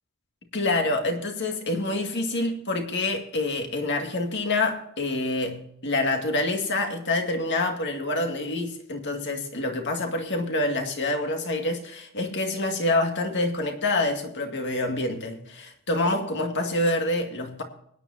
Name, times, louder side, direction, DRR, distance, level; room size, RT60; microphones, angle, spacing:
voice 1, 0.5-17.6, left 2 dB, 55° left, 2.1 m, -27 dB
23.0 x 9.8 x 2.8 m
head